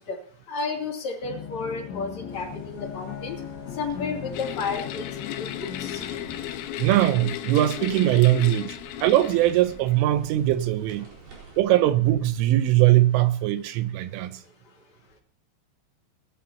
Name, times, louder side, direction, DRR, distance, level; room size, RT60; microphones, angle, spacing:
voice 1, 0.5-3.4 3.8-5.5 5.8-6.0, left 4 dB, 40° left, 3.6 m, -32 dB
sound 1, 1.2-6.6, left 8 dB, 60° left, 4.2 m, -38 dB
sound 2, 2.3-11.6, right 4 dB, 50° right, 6.4 m, -50 dB
sound 3, 4.3-9.9, left 12 dB, 85° left, 3.6 m, -35 dB
voice 2, 6.8-8.8 9.0-11.1 11.6-14.4, right 14 dB, 80° right, 3.3 m, -21 dB
20.5 x 13.0 x 2.9 m
omnidirectional pair, 5.9 m